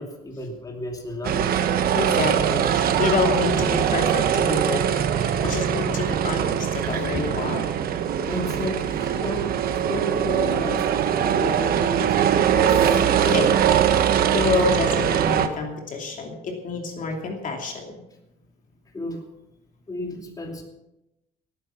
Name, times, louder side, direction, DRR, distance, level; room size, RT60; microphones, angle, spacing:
voice 1, 0.0-1.5 5.4-5.5 8.3-13.3 18.9-19.2 19.9-20.6, left 1 dB, 20° left, 1 dB, 2.7 m, -33 dB
sound 1, 1.2-15.5, right 9 dB, 60° right, 1.2 m, -22 dB
voice 2, 1.9-7.7 13.2-13.7 13.9-18.0, left 4 dB, 50° left, 2 dB, 2.9 m, -28 dB
18.0 x 9.2 x 5.8 m, 0.91 s
cardioid pair, 110°, 17 cm